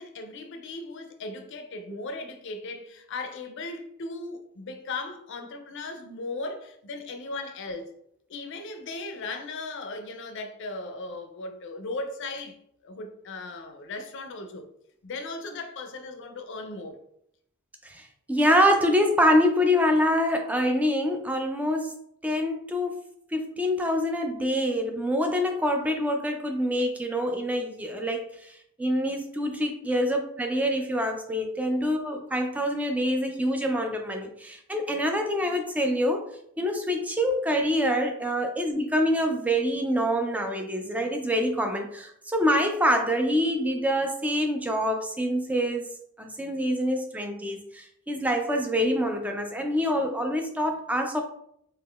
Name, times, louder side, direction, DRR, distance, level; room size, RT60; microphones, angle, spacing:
voice 1, 0.0-7.9 8.3-12.6 12.8-14.7 15.0-17.0, left 3 dB, 60° left, 0.5 m, -37 dB
voice 2, 17.8-23.0 23.3-36.3 36.6-45.9 46.2-51.2, equal, 5° right, 0.3 m, -26 dB
3.5 x 2.8 x 2.3 m
head